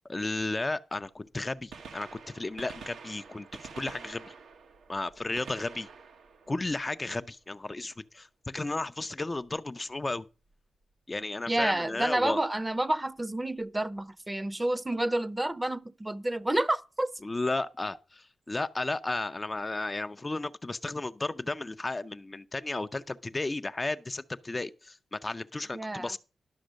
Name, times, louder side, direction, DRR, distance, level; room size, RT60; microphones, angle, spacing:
voice 1, 0.1-3.5 3.7-4.3 4.9-5.9 6.5-10.3 11.1-12.4 17.2-26.2, left 2 dB, 25° left, 0.5 m, -34 dB
Gunshot gunfire, 1.6-7.4 9.4-9.5 10.5-10.6 12.2-12.3 13.7-13.8 14.0-14.1, right 5 dB, 85° right, 1.2 m, -48 dB
voice 2, 11.5-17.1 25.7-26.1, right 1 dB, 15° right, 0.7 m, -29 dB
11.5 x 6.0 x 6.3 m
cardioid pair, 80°, 0 cm